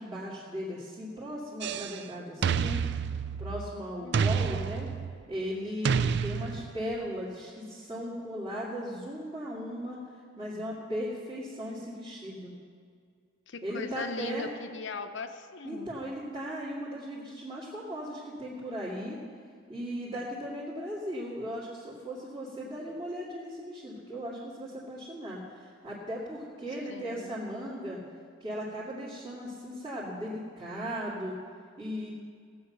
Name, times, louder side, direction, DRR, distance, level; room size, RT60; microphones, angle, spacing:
voice 1, 0.0-2.8 3.4-4.9 5.3-10.0 10.4-12.5 13.6-14.5 15.6-19.2 19.7-28.0 28.4-31.4 31.8-32.1, equal, 25° right, -9 dB, 2.3 m, -37 dB
sound 1, 1.6-2.0 2.4-3.7 4.1-5.2 5.8-6.9, right 6 dB, 55° right, 0.3 m, -29 dB
voice 2, 4.0-4.3 13.5-15.9 26.9-27.4, left 4 dB, 55° left, 8 dB, 0.7 m, -39 dB
17.0 x 8.0 x 6.5 m, 2.1 s
head